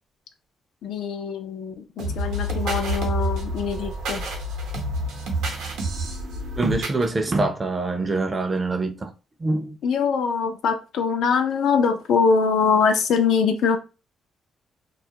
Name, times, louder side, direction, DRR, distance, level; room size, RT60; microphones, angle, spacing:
voice 1, 0.8-4.2 9.8-13.8, left 5 dB, 70° left, 0.4 m, -23 dB
sound 1, 2.0-7.1, right 1 dB, 90° right, 0.7 m, -28 dB
voice 2, 6.6-9.1 9.4-9.8, right 2 dB, 25° right, 0.4 m, -24 dB
2.3 x 2.0 x 2.7 m
cardioid pair, 90°, 0 cm